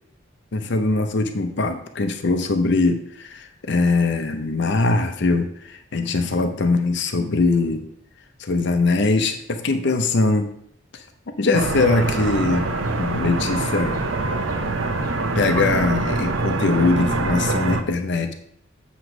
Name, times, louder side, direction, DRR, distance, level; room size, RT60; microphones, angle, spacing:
voice 1, 0.5-7.8 8.4-10.5 10.9-11.0 11.4-14.0 15.3-18.3, left 3 dB, 60° left, 7 dB, 0.6 m, -22 dB
sound 1, 11.5-17.8, right 2 dB, 75° right, 0.7 m, -24 dB
sound 2, 11.8-16.1, right 1 dB, 15° right, 1.5 m, -43 dB
7.8 x 3.1 x 5.9 m, 0.68 s
head